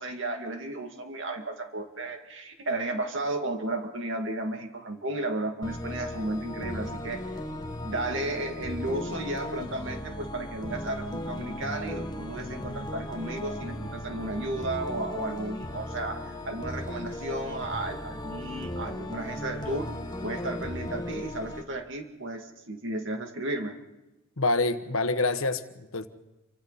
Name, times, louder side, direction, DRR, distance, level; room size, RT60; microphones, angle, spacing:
voice 1, 0.0-7.2 7.8-19.9 20.2-23.7, right 2 dB, 60° right, 4 dB, 2.4 m, -33 dB
sound 1, 5.6-21.6, left 1 dB, 20° left, 1.6 m, -37 dB
voice 2, 24.4-26.1, left 3 dB, 80° left, 9 dB, 1.3 m, -26 dB
29.0 x 25.0 x 4.2 m, 0.99 s
head